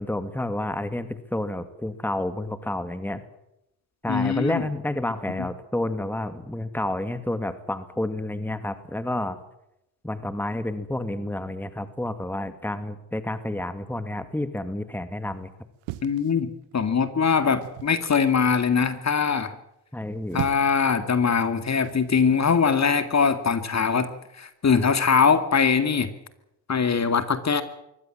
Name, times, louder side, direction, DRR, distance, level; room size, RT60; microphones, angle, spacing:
voice 1, 0.0-3.2 4.0-9.4 10.0-15.5 19.9-20.4, left 1 dB, 5° left, 11 dB, 2.2 m, -30 dB
voice 2, 4.1-4.6 16.0-19.5 20.3-24.1 24.4-26.1 26.7-27.6, left 6 dB, 35° left, 11 dB, 2.2 m, -22 dB
sound 1, 15.8-16.9 17.6-18.0 20.0-20.9 21.8-22.1, right 16 dB, 80° right, 1.3 m, -36 dB
23.5 x 17.5 x 7.5 m, 0.85 s
supercardioid pair, 70°, 45 cm